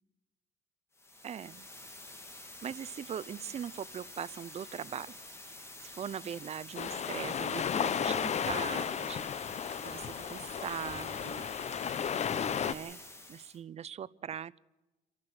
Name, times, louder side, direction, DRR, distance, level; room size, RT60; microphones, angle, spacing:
sound 1, 0.9-13.6, left 2 dB, 15° left, 2.7 m, -49 dB
voice 1, 1.2-1.7 2.6-5.1 5.8-9.3 9.8-11.5 12.6-13.0 13.3-14.6, right 9 dB, 40° right, 20 dB, 0.6 m, -41 dB
sound 2, 6.7-12.7, left 8 dB, 40° left, 0.9 m, -34 dB
28.5 x 11.5 x 7.9 m, 1.0 s
cardioid pair, 110°, 17 cm